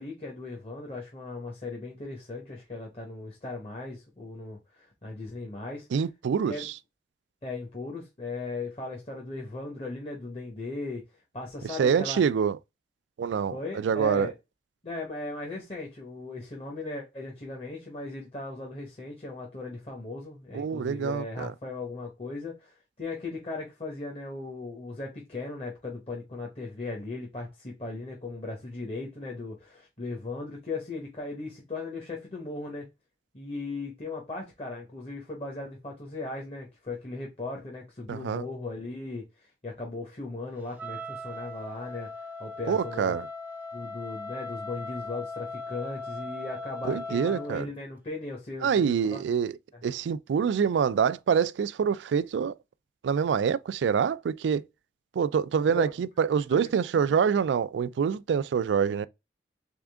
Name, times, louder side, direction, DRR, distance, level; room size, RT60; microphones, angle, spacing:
voice 1, 0.0-5.9 6.5-6.7 7.4-11.0 11.3-12.2 13.5-14.3 14.8-32.9 33.3-39.2 39.6-42.1 42.4-43.2 43.7-49.2 55.8-55.9 56.3-56.7 57.1-57.2, left 3 dB, 35° left, 1.0 m, -37 dB
voice 2, 5.9-6.7 11.8-12.6 13.2-14.3 20.5-21.5 38.1-38.4 42.7-43.3 46.8-47.7 48.6-49.6 49.8-52.5 53.0-54.6 55.2-59.1, right 7 dB, 85° right, 0.3 m, -26 dB
Wind instrument woodwind instrument, 40.8-47.6, left 2 dB, 10° right, 0.6 m, -39 dB
3.6 x 3.6 x 3.4 m
head